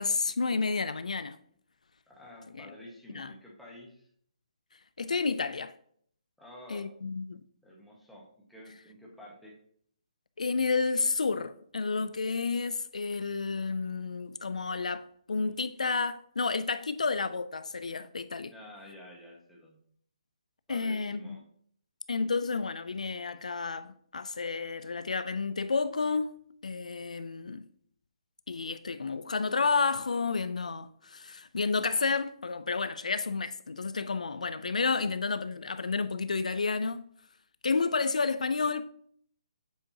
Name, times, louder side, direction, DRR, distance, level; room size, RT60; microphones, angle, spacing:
voice 1, 0.0-1.4 2.5-2.7 3.1-3.3 5.0-5.7 6.7-7.4 10.4-18.5 20.7-21.4 22.1-26.4 26.6-27.7 28.5-37.1 37.6-38.8, left 4 dB, 85° left, 0.4 m, -31 dB
voice 2, 2.1-4.1 6.4-6.9 7.6-9.5 18.5-19.8 20.7-21.4, left 1 dB, ahead, 1.5 m, -50 dB
7.3 x 5.1 x 2.9 m
hypercardioid pair, 150°, 4 cm